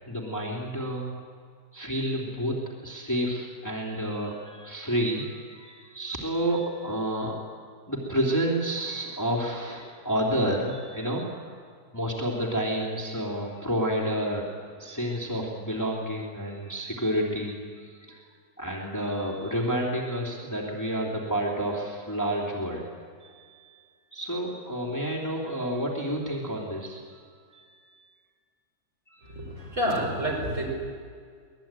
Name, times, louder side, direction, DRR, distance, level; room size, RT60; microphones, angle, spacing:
voice 1, 0.1-1.1 1.7-7.3 7.9-11.6 11.9-18.2 18.6-22.9 23.2-23.8 24.1-27.2 27.5-28.1 29.1-29.8, equal, 10° left, -2 dB, 3.0 m, -30 dB
voice 2, 29.4-30.7, equal, 45° right, -1 dB, 5.4 m, -28 dB
23.5 x 19.5 x 9.0 m, 2.1 s
omnidirectional pair, 1.8 m